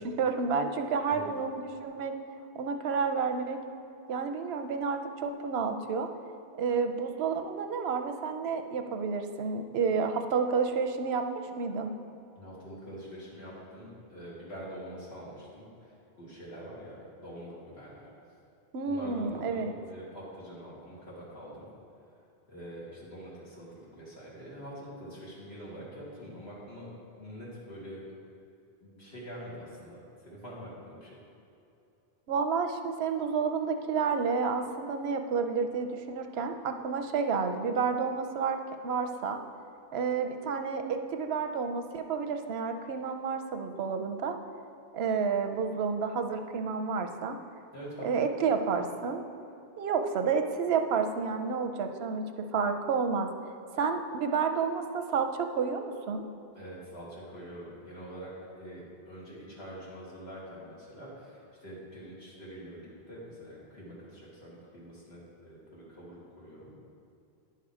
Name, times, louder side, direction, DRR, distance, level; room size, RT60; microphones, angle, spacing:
voice 1, 0.2-2.1 2.5-3.6 4.1-6.1 6.5-11.3 11.6-12.0 18.7-19.7 32.3-38.6 38.8-39.4 39.9-44.4 44.9-47.4 48.0-49.2 49.8-53.3 53.8-56.3, right 5 dB, 85° right, 6 dB, 0.9 m, -30 dB
voice 2, 12.3-18.1 18.8-21.7 22.5-28.0 28.8-31.1 47.7-48.1 56.5-58.3 58.6-66.8, equal, 90° left, -7 dB, 2.5 m, -45 dB
10.5 x 5.7 x 4.9 m, 2.8 s
omnidirectional pair, 1.0 m